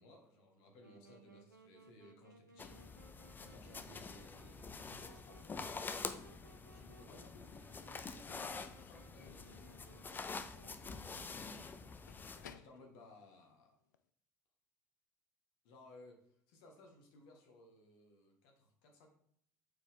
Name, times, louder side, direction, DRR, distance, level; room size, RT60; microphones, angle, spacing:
voice 1, 0.0-2.8 3.4-5.7 6.7-8.5 8.8-9.7 11.1-12.0 12.5-13.8 15.6-19.1, left 2 dB, 55° left, 1 dB, 1.7 m, -60 dB
Wind instrument woodwind instrument, 0.8-11.7, right 3 dB, 90° right, 0.5 m, -63 dB
sound 1, 2.6-12.5, left 4 dB, 20° left, 0.5 m, -47 dB
Slam / Squeak / Wood, 8.4-14.1, left 8 dB, 75° left, 0.4 m, -63 dB
6.7 x 4.6 x 3.6 m, 0.66 s
figure-of-eight pair, 65°, 10 cm